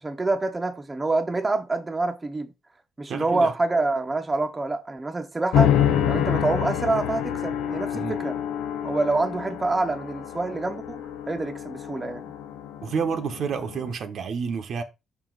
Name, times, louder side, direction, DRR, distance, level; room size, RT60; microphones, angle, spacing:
voice 1, 0.0-2.5 3.0-5.8 6.1-8.3 8.8-11.0 11.3-12.2, right 2 dB, 20° right, 0.9 m, -26 dB
voice 2, 3.1-3.5 7.9-8.2 12.8-14.8, right 6 dB, 65° right, 1.0 m, -29 dB
sound 1, 5.5-13.9, left 9 dB, 90° left, 0.7 m, -27 dB
5.4 x 4.8 x 3.9 m
cardioid pair, 90°, 0 cm